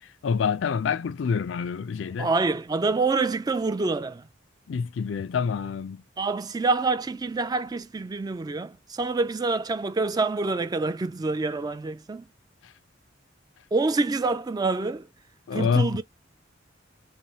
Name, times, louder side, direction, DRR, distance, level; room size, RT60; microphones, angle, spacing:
voice 1, 0.0-2.3 4.7-6.0 12.6-12.7 15.5-16.0, left 6 dB, 75° left, 0.4 m, -27 dB
voice 2, 2.2-4.3 6.2-12.3 13.7-15.1 15.5-16.0, right 3 dB, 20° right, 0.3 m, -26 dB
3.3 x 3.0 x 2.7 m
head